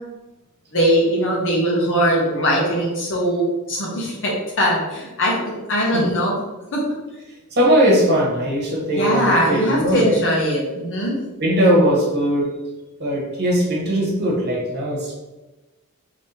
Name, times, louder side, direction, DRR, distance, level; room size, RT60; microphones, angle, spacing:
voice 1, 0.7-6.4 6.7-6.8 8.8-11.2, equal, 60° left, -3 dB, 1.3 m, -20 dB
voice 2, 7.5-10.1 11.4-12.5 13.0-15.1, equal, 50° right, -3 dB, 1.4 m, -19 dB
3.6 x 3.2 x 4.2 m, 1.1 s
head